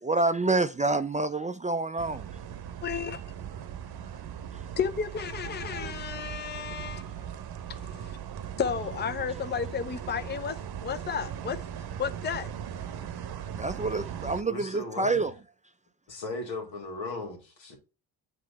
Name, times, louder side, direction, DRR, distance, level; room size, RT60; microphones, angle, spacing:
voice 1, 0.0-2.2 13.6-15.3, right 3 dB, 15° right, 0.4 m, -27 dB
sound 1, 2.0-14.4, right 9 dB, 55° right, 0.9 m, -39 dB
voice 2, 2.8-3.2 4.8-7.1 7.7-8.2 8.6-11.6 12.0-12.5, left 7 dB, 25° left, 0.6 m, -32 dB
voice 3, 14.4-15.2 16.1-17.8, left 2 dB, 80° left, 1.9 m, -37 dB
7.6 x 3.2 x 4.0 m
hypercardioid pair, 40°, 45 cm